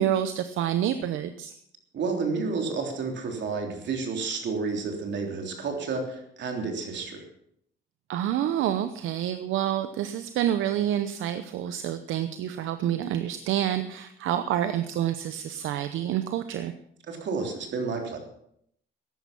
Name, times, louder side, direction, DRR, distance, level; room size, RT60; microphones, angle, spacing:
voice 1, 0.0-1.5 8.1-16.7, right 11 dB, 85° right, 10 dB, 0.8 m, -28 dB
voice 2, 1.9-7.2 17.1-18.2, right 4 dB, 65° right, 3 dB, 3.4 m, -30 dB
14.0 x 11.0 x 5.9 m, 0.70 s
cardioid pair, 90°, 20 cm